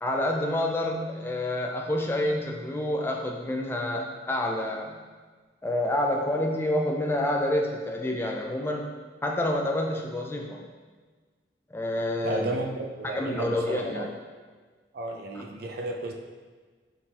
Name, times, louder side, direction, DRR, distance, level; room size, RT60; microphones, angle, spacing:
voice 1, 0.0-5.0 5.6-8.9 9.2-10.7 11.7-12.5 13.0-14.1 15.3-15.4, left 1 dB, 10° left, 1 dB, 0.3 m, -28 dB
voice 2, 12.2-14.1 14.9-16.1, right 2 dB, 55° right, 2 dB, 0.4 m, -33 dB
4.1 x 3.9 x 2.4 m, 1.4 s
head